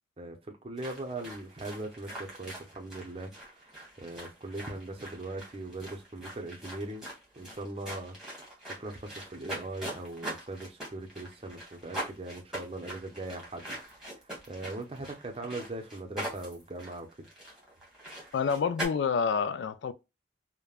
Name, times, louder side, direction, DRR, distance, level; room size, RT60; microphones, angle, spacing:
voice 1, 0.2-7.1 7.3-8.5 8.8-13.7 14.1-17.3, right 2 dB, 30° right, 0.6 m, -40 dB
sound 1, 0.8-18.9, right 1 dB, 5° right, 1.3 m, -43 dB
voice 2, 18.3-19.9, left 6 dB, 70° left, 0.3 m, -28 dB
3.3 x 2.1 x 2.3 m
head